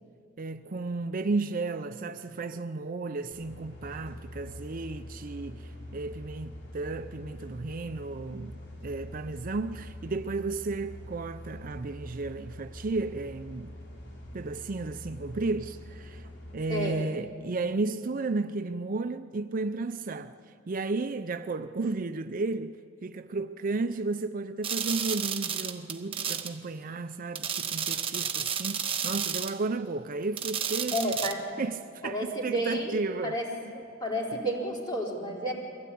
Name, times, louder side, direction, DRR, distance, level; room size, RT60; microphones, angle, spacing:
voice 1, 0.4-13.7 14.3-31.2 31.6-33.4 33.7-33.8, right 3 dB, 45° right, 0.5 m, -33 dB
sound 1, 3.3-16.6, left 1 dB, 60° left, 3.5 m, -45 dB
voice 2, 16.7-17.1 30.9-31.5 32.0-33.0 33.2-33.5 34.0-35.5, right 1 dB, 20° left, 4.1 m, -31 dB
sound 2, 24.6-26.5 27.4-29.6 30.4-31.3, right 7 dB, 30° right, 1.0 m, -32 dB
23.5 x 16.0 x 8.5 m
head